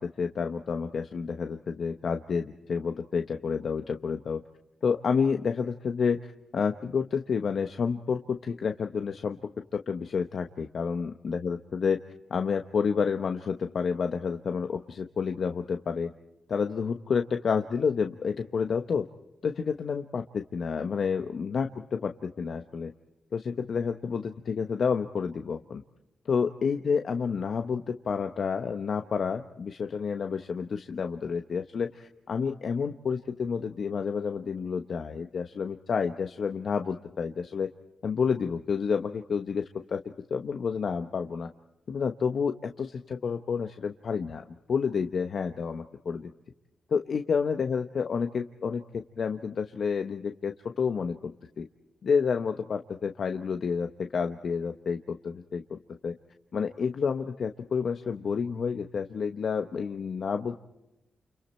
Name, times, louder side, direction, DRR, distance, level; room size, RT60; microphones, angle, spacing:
voice 1, 0.0-4.4 4.8-6.2 6.5-9.4 9.7-12.0 12.3-16.1 16.5-19.0 19.4-22.9 23.3-25.8 26.2-37.7 38.0-40.0 40.3-41.5 41.9-46.3 46.9-51.7 52.0-55.8 56.0-56.1 56.5-60.6, left 6 dB, 65° left, 6 dB, 1.0 m, -29 dB
30.0 x 29.5 x 4.4 m, 0.91 s
cardioid pair, 90°, 0 cm